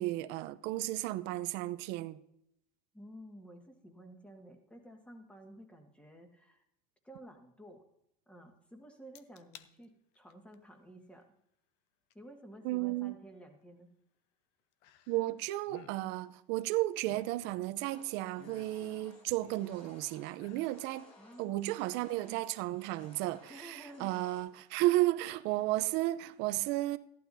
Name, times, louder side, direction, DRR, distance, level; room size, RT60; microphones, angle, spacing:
voice 1, 0.0-2.2 12.6-13.1 15.1-21.1 21.4-27.0, right 17 dB, 60° right, 0.6 m, -33 dB
voice 2, 2.9-6.6 7.0-7.8 8.3-11.2 12.1-13.9 21.2-21.7 23.5-24.2, right 1 dB, 5° left, 1.6 m, -53 dB
sound 1, 9.1-9.7 10.1-10.5 12.1-12.2 14.8-15.4 15.6-16.0 16.7-17.8 18.3-19.9 20.3-20.8 21.2-21.3, left 11 dB, 65° left, 0.7 m, -56 dB
sound 2, 17.8-24.4, left 2 dB, 35° left, 5.1 m, -59 dB
15.0 x 11.5 x 2.7 m
supercardioid pair, 130°, 20 cm